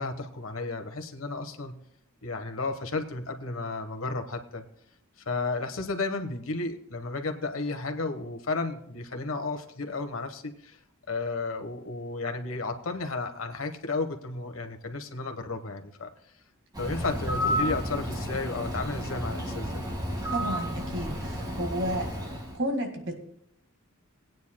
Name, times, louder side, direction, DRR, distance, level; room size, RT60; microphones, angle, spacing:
voice 1, 0.0-1.8 2.2-4.6 5.3-10.8 11.1-16.1 16.8-19.8, left 3 dB, 80° left, 6 dB, 1.2 m, -33 dB
Bird, 16.7-22.6, equal, 20° right, 1.8 m, -32 dB
voice 2, 20.3-22.1 22.5-23.2, equal, 65° right, 4 dB, 1.9 m, -31 dB
19.5 x 9.3 x 2.2 m, 0.72 s
head